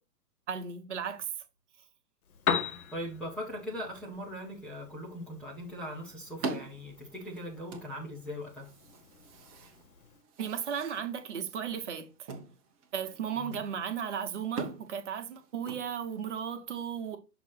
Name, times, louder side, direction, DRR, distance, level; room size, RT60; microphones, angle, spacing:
voice 1, 0.5-1.2 10.4-12.3 12.9-17.2, right 7 dB, 45° right, 1.1 m, -35 dB
Piano, 2.2-10.2, left 7 dB, 65° left, 0.9 m, -40 dB
voice 2, 2.9-8.7 13.4-13.6, equal, ahead, 0.6 m, -40 dB
sound 1, 5.4-16.5, right 4 dB, 20° right, 0.8 m, -44 dB
6.1 x 2.9 x 5.6 m
figure-of-eight pair, 115°, 48 cm